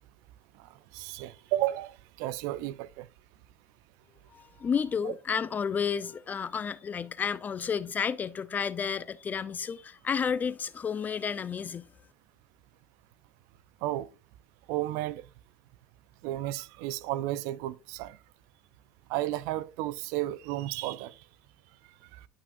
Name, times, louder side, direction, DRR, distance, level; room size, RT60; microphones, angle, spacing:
voice 1, 0.9-3.1 5.0-5.1 13.8-14.1 14.7-15.2 16.2-18.2 19.1-21.1, right 15 dB, 75° right, 0.4 m, -33 dB
voice 2, 4.3-11.8, left 6 dB, 30° left, 0.6 m, -31 dB
11.0 x 5.8 x 2.6 m
supercardioid pair, 95°, 6 cm